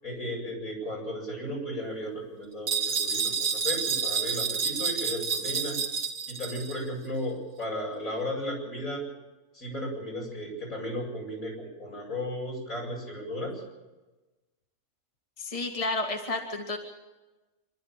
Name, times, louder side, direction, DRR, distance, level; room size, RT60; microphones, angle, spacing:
voice 1, 0.0-5.8 6.3-9.0 9.5-13.5, equal, 75° left, -2 dB, 8.5 m, -35 dB
sound 1, 2.7-6.8, right 6 dB, 80° right, 2.3 m, -29 dB
voice 2, 15.4-16.8, left 2 dB, 25° left, 2 dB, 2.1 m, -31 dB
26.5 x 13.0 x 9.0 m, 1.1 s
omnidirectional pair, 1.5 m